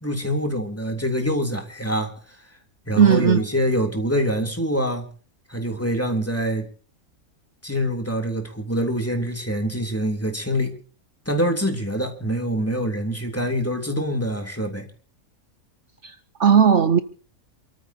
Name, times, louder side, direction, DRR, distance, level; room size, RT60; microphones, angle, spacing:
voice 1, 0.0-2.1 2.9-5.0 5.5-6.7 7.6-10.7 11.2-14.9, equal, 10° left, 3.1 m, -25 dB
voice 2, 3.0-3.4 16.0-16.1 16.4-17.0, right 7 dB, 60° right, 1.1 m, -16 dB
28.0 x 14.0 x 2.9 m
omnidirectional pair, 1.5 m